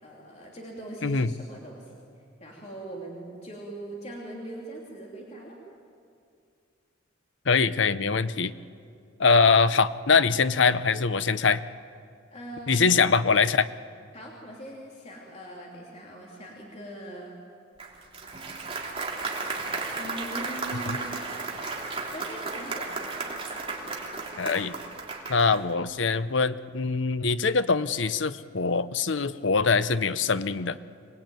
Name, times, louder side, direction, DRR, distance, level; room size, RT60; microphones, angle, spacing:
voice 1, 0.0-1.9 2.4-5.6 12.3-13.0 14.1-17.3 20.0-21.1 22.1-22.9, right 1 dB, 35° left, -2 dB, 3.1 m, -41 dB
voice 2, 1.0-1.3 7.5-8.5 9.2-11.6 12.7-13.7 20.9-21.0 24.4-24.7 25.3-30.8, left 4 dB, 70° left, 13 dB, 0.8 m, -23 dB
Applause, 17.8-25.7, right 3 dB, 30° right, 3.4 m, -34 dB
25.5 x 20.0 x 9.2 m, 2.4 s
head